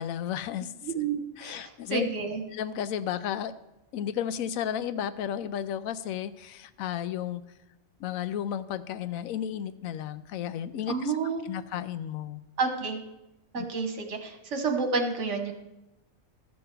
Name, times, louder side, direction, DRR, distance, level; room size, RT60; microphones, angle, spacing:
voice 1, 0.0-0.7 1.4-2.1 2.5-3.5 3.9-7.4 8.0-11.1 11.4-12.4 13.5-13.6, left 9 dB, 90° left, 13 dB, 1.0 m, -33 dB
voice 2, 0.8-2.4 10.9-11.6 12.6-13.0 13.5-15.5, right 4 dB, 65° right, 5 dB, 1.4 m, -30 dB
13.5 x 6.3 x 4.6 m, 0.94 s
omnidirectional pair, 1.4 m